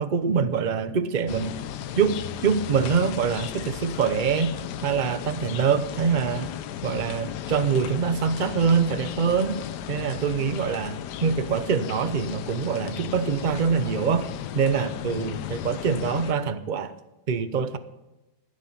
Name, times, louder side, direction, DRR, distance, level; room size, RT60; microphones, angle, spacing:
voice 1, 0.0-1.6 2.0-4.6 4.8-6.5 6.8-9.6 9.9-14.3 14.5-16.9 17.3-17.8, right 6 dB, 40° right, 12 dB, 0.7 m, -24 dB
sound 1, 1.3-16.3, left 10 dB, 90° left, 1.3 m, -35 dB
12.0 x 11.5 x 5.7 m, 1.0 s
omnidirectional pair, 1.7 m